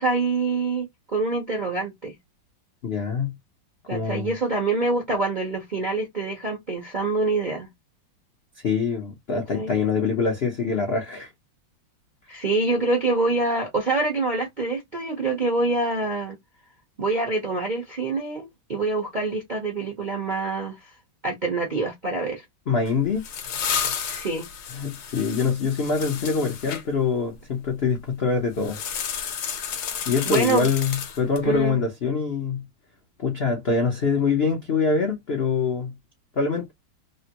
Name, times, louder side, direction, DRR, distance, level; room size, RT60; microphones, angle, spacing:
voice 1, 0.0-2.1 3.9-7.7 9.3-9.8 12.3-16.4 17.0-20.9 21.2-22.4 24.0-24.5 30.3-30.7 31.4-31.8, right 3 dB, 55° right, 0.5 m, -26 dB
voice 2, 2.8-3.3 3.9-4.3 8.6-11.3 22.7-23.2 24.7-28.8 30.1-32.6 33.2-35.9 36.4-36.7, left 5 dB, 80° left, 0.5 m, -24 dB
sound 1, 22.9-26.8 28.6-31.5, left 7 dB, 60° left, 1.2 m, -31 dB
3.4 x 2.1 x 2.8 m
omnidirectional pair, 2.2 m